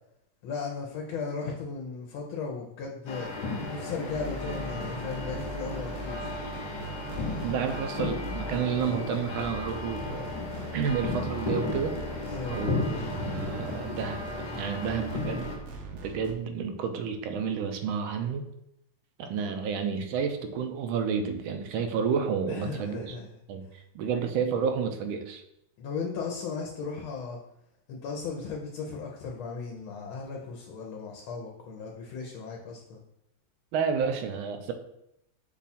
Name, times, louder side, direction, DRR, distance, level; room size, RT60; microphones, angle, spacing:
voice 1, 0.4-3.3 3.7-6.3 12.3-12.6 22.5-23.3 25.8-27.4 27.9-33.0, left 5 dB, 80° left, 0 dB, 1.5 m, -36 dB
sound 1, 3.1-15.6, left 3 dB, 60° left, 1.3 m, -34 dB
sound 2, 4.1-16.3, right 1 dB, 65° right, 0.9 m, -41 dB
voice 2, 7.4-10.3 10.7-12.2 12.5-15.5 15.9-18.5 19.2-23.2 23.5-23.7 23.9-25.4 33.7-34.7, right 6 dB, 80° right, 7 dB, 1.4 m, -30 dB
5.5 x 2.3 x 4.1 m, 0.80 s
omnidirectional pair, 2.2 m